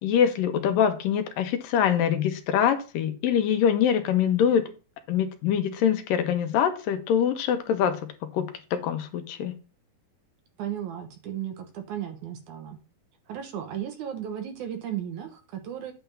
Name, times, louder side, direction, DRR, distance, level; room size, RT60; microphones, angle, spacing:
voice 1, 0.0-4.7 5.1-8.0 8.3-9.6, left 8 dB, 75° left, 7 dB, 2.6 m, -24 dB
voice 2, 10.6-12.8 13.3-15.9, right 10 dB, 65° right, 6 dB, 2.2 m, -35 dB
9.0 x 3.5 x 6.8 m, 0.32 s
omnidirectional pair, 4.1 m